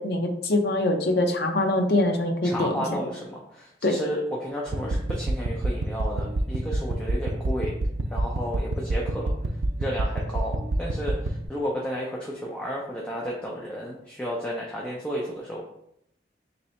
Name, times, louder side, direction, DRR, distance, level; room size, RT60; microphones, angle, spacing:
voice 1, 0.0-2.8 3.8-3.9, left 1 dB, 70° left, 4 dB, 0.6 m, -23 dB
voice 2, 2.4-7.7 8.1-9.3 9.8-15.6, equal, 5° left, -4 dB, 0.5 m, -32 dB
sound 1, 4.7-11.5, right 1 dB, 80° right, 0.4 m, -28 dB
3.2 x 2.8 x 4.2 m, 0.75 s
head